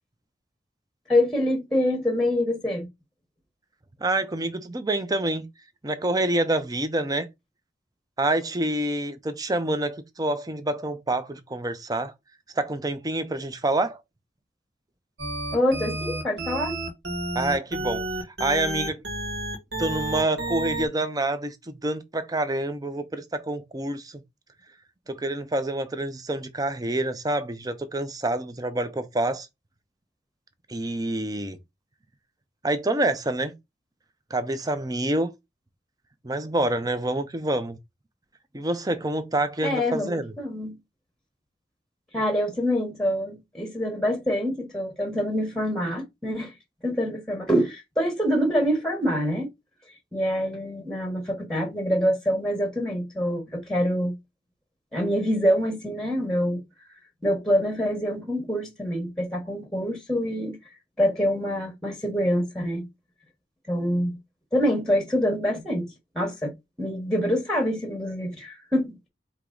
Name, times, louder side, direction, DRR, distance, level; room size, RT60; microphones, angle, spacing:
voice 1, 1.1-2.9 15.5-16.8 39.6-40.8 42.1-46.5 46.8-49.5 50.1-54.1 54.9-56.6 57.2-60.6 61.0-62.9 63.7-64.2 64.5-65.9 66.1-66.5 66.8-68.9, equal, 5° left, 1.1 m, -25 dB
voice 2, 4.0-5.5 5.8-7.3 8.2-12.1 12.6-14.0 17.3-18.1 18.4-19.0 19.8-21.6 21.8-24.2 25.1-29.5 30.7-31.6 32.6-33.5 34.3-35.3 36.2-37.8 38.5-40.3, right 1 dB, 20° right, 0.6 m, -27 dB
sound 1, 15.2-20.9, right 1 dB, 70° right, 1.6 m, -31 dB
4.6 x 2.9 x 3.8 m
head